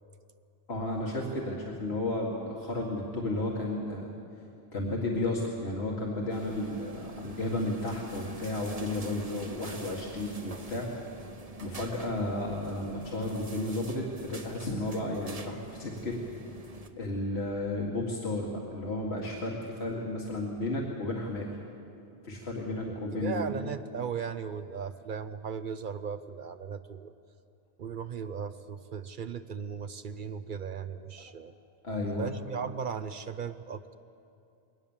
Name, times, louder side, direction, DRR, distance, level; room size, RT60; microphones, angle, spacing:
voice 1, 0.7-4.1 4.7-10.9 11.6-16.2 17.0-21.6 22.2-23.7 31.8-32.3, left 2 dB, 85° left, -2 dB, 2.2 m, -33 dB
sound 1, 6.3-16.9, right 2 dB, 40° right, 1.2 m, -44 dB
voice 2, 22.9-27.1 27.8-31.5 32.0-34.0, right 6 dB, 60° right, 11 dB, 0.8 m, -37 dB
21.5 x 18.5 x 7.3 m, 2.6 s
omnidirectional pair, 1.0 m